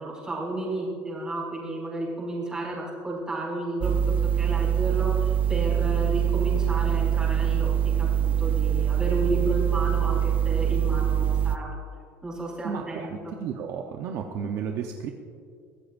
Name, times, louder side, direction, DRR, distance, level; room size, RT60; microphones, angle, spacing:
voice 1, 0.0-7.7 8.0-11.7 12.2-13.3, right 2 dB, 10° right, -5 dB, 4.4 m, -32 dB
sound 1, 3.8-11.6, right 9 dB, 25° right, 0.4 m, -24 dB
voice 2, 12.6-15.1, right 7 dB, 50° right, 3 dB, 0.8 m, -33 dB
23.0 x 16.0 x 2.6 m, 2.3 s
cardioid pair, 160°, 6 cm